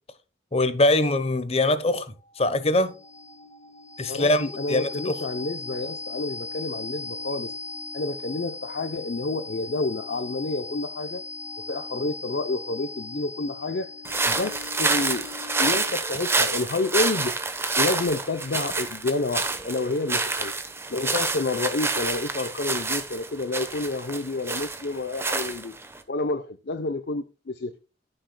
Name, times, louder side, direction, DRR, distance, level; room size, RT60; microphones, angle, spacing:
voice 1, 0.5-2.1 2.4-3.0 4.0-5.2, left 2 dB, 35° left, 0.9 m, -22 dB
Suspense Motif, 2.2-16.1, left 3 dB, 15° left, 2.3 m, -39 dB
voice 2, 4.1-7.5 7.9-11.2 11.7-13.9 14.2-17.3 17.8-20.5 20.9-25.7 26.1-27.7, left 3 dB, 65° left, 0.7 m, -29 dB
sound 1, 14.0-26.0, right 3 dB, 15° right, 1.0 m, -28 dB
14.0 x 6.6 x 2.2 m
head